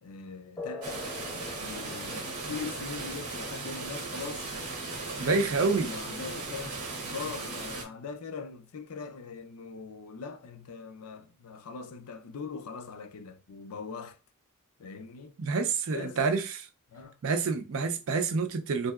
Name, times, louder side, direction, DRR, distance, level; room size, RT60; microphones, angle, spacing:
voice 1, 0.0-1.1 1.5-4.5 5.0-6.8 7.1-14.2 14.8-15.3 15.9-16.2 16.9-17.2, left 5 dB, 85° left, 0.5 m, -41 dB
sound 1, 0.6-8.6, left 2 dB, 15° left, 0.6 m, -47 dB
sound 2, 0.8-7.8, right 3 dB, 90° right, 0.8 m, -37 dB
voice 2, 5.2-5.9 15.4-16.7 17.2-18.9, right 4 dB, 65° right, 0.4 m, -28 dB
3.2 x 2.7 x 2.3 m
head